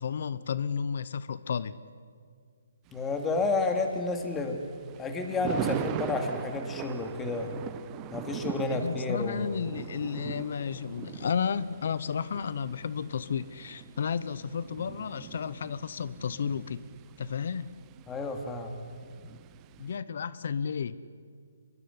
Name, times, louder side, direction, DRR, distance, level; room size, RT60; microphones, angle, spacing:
voice 1, 0.0-1.8 8.7-16.8 17.2-17.7 19.8-21.0, left 6 dB, 60° left, 17 dB, 0.9 m, -32 dB
voice 2, 2.9-4.6 5.0-7.5 8.1-9.5 18.1-18.7, left 3 dB, 10° left, 4 dB, 2.8 m, -30 dB
Thunder, 2.9-20.0, right 12 dB, 20° right, 0.8 m, -41 dB
24.5 x 22.0 x 9.8 m, 2.2 s
hypercardioid pair, 150°, 0 cm